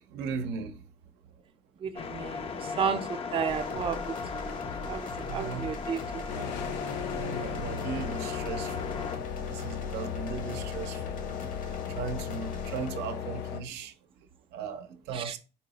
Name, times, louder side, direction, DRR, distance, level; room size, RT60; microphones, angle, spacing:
voice 1, 0.1-0.7 5.2-5.7 7.2-8.9 9.5-11.0 12.0-13.9 14.5-15.4, right 6 dB, 85° right, 0.5 m, -37 dB
voice 2, 1.8-4.6 4.9-6.5 15.1-15.3, right 6 dB, 30° right, 0.4 m, -33 dB
sound 1, 2.0-9.2, left 5 dB, 35° left, 0.4 m, -37 dB
sound 2, 3.5-12.9, left 2 dB, 50° left, 0.8 m, -42 dB
sound 3, 6.3-13.6, left 9 dB, 85° left, 0.5 m, -36 dB
4.1 x 2.0 x 3.8 m
cardioid pair, 110°, 17 cm